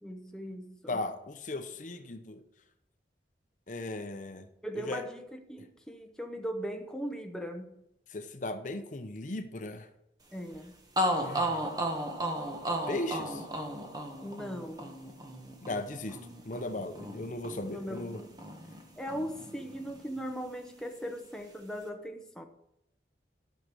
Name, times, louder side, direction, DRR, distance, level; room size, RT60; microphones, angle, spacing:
voice 1, 0.0-1.0 4.6-7.7 10.3-10.7 14.2-14.9 17.6-18.3 19.0-22.4, equal, 5° left, 0.8 m, -39 dB
voice 2, 0.9-2.4 3.7-4.5 4.7-5.1 8.1-9.9 11.2-11.6 12.9-13.4 15.6-16.2 16.4-18.2, left 2 dB, 45° left, 0.8 m, -37 dB
sound 1, 10.5-10.6 11.0-18.8 19.1-20.2, right 1 dB, 20° right, 1.3 m, -35 dB
12.0 x 6.6 x 6.2 m
head